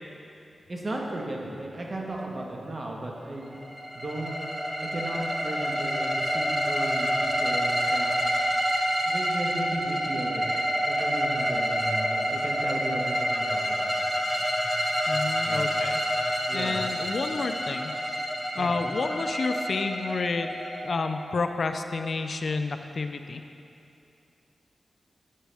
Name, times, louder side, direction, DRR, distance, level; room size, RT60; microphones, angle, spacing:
voice 1, 0.7-3.5 3.9-4.3 4.8-8.1 9.1-10.4 10.8-14.0 15.5-15.7 16.5-16.9 18.5-18.7, right 1 dB, 45° right, -1 dB, 1.3 m, -35 dB
sound 1, 3.5-21.4, equal, ahead, 1.1 m, -28 dB
voice 2, 15.1-16.0 16.5-17.9 18.5-20.5 20.8-23.4, left 4 dB, 60° left, 7 dB, 0.4 m, -30 dB
11.0 x 8.2 x 3.4 m, 2.7 s
wide cardioid pair, 100°, 0 cm